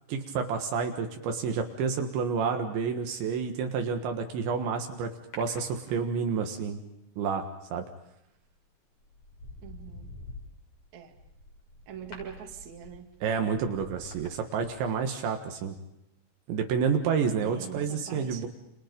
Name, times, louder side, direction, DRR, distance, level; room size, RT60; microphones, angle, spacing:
voice 1, 0.1-5.1 5.4-6.8 7.2-7.9 13.2-15.8 16.5-18.5, right 6 dB, 75° right, 5 dB, 3.7 m, -29 dB
sound 1, 5.3-6.4 8.2-8.5 9.0-15.2 15.5-15.6, left 2 dB, 35° left, 7.0 m, -48 dB
voice 2, 9.6-10.1 10.9-11.1 11.9-13.1 17.4-18.5, right 8 dB, 45° right, 3 dB, 3.3 m, -43 dB
30.0 x 28.5 x 5.3 m, 0.84 s
omnidirectional pair, 5.5 m